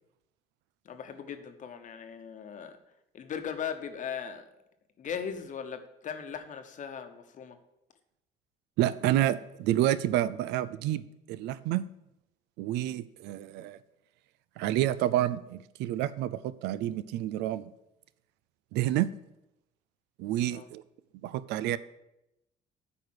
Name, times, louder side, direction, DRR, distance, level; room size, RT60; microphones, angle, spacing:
voice 1, 0.8-2.8 3.1-4.5 5.0-7.6 20.5-20.7, left 7 dB, 50° left, 7 dB, 1.0 m, -38 dB
voice 2, 8.8-11.9 12.6-13.8 14.6-17.7 18.7-19.1 20.2-20.8 21.2-21.8, right 13 dB, 90° right, 17 dB, 0.4 m, -29 dB
8.6 x 4.9 x 6.4 m, 0.87 s
cardioid pair, 110°, 17 cm